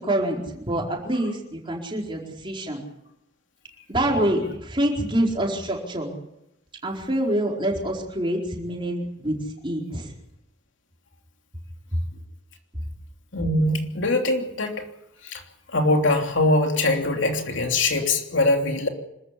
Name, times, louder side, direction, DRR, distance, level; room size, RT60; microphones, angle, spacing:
voice 1, 0.0-2.8 3.9-6.1 6.8-9.3 9.6-10.1, right 1 dB, 25° right, -1 dB, 4.5 m, -26 dB
voice 2, 13.3-14.8 15.2-15.4 15.7-18.9, left 2 dB, 70° left, 3 dB, 3.2 m, -22 dB
26.0 x 14.5 x 8.5 m, 0.84 s
head